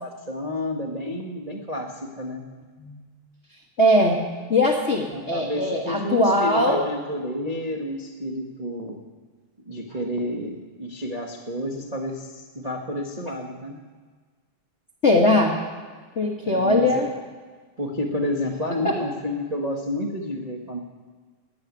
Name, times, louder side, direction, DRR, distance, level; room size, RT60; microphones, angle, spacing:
voice 1, 0.0-2.4 5.1-9.0 9.6-13.8 16.4-16.9 17.8-20.8, left 1 dB, 70° right, -1 dB, 0.3 m, -30 dB
voice 2, 3.8-4.2 4.5-6.8 15.0-15.6 16.1-17.1 18.8-19.0, left 1 dB, 45° left, -1 dB, 0.8 m, -20 dB
13.0 x 9.7 x 9.5 m, 1.5 s
omnidirectional pair, 3.5 m